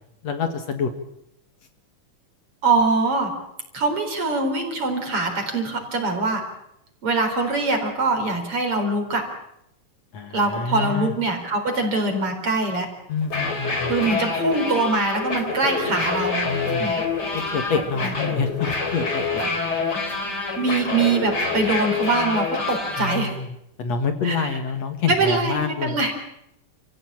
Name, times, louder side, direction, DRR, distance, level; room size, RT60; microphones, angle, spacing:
voice 1, 0.2-0.9 10.1-11.1 13.1-13.9 16.5-16.9 17.3-19.5 23.0-26.0, left 5 dB, 60° left, 7 dB, 2.8 m, -27 dB
voice 2, 2.6-3.3 3.7-6.4 7.0-9.2 10.3-12.9 13.9-16.5 16.8-17.0 18.0-18.1 20.6-23.4 24.2-24.5 25.1-26.1, right 3 dB, 45° right, 4 dB, 5.0 m, -23 dB
sound 1, 13.2-23.2, left 4 dB, 30° left, 4.2 m, -26 dB
29.0 x 16.5 x 8.9 m, 0.82 s
omnidirectional pair, 3.7 m